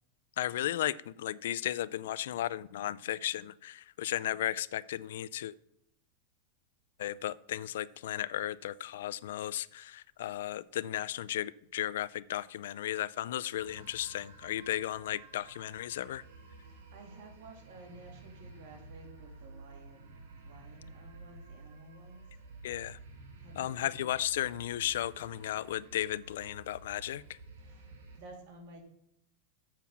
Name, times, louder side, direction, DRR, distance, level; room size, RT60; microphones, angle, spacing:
voice 1, 0.4-5.5 7.0-16.2 22.6-23.0 23.6-27.4, left 12 dB, 80° left, 0.3 m, -35 dB
sound 1, 13.6-28.2, right 3 dB, 85° right, 2.1 m, -52 dB
voice 2, 16.6-20.1 20.4-22.3 23.4-24.1 27.6-28.8, right 2 dB, 60° right, 2.7 m, -53 dB
7.4 x 5.9 x 7.1 m
supercardioid pair, 140°, 0 cm